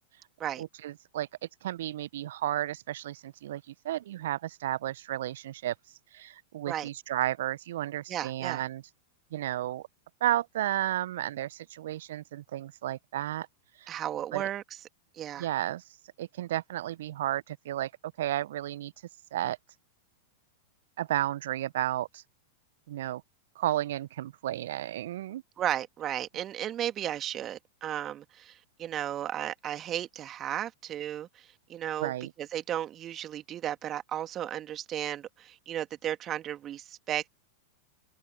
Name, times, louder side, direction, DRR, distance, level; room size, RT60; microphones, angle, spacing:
voice 1, 0.6-1.3 1.6-5.7 6.1-8.8 9.3-9.9 10.2-13.5 13.8-13.9 14.3-14.5 15.4-15.8 16.2-17.9 18.2-18.9 19.3-19.6 21.0-22.2 22.9-23.2 23.6-25.4 32.0-32.3, right 13 dB, 60° right, 0.8 m, -32 dB
voice 2, 8.1-8.6 13.9-14.6 15.1-15.5 25.6-32.1 32.4-37.3, right 11 dB, 30° right, 2.0 m, -34 dB
figure-of-eight pair, 95°, 0 cm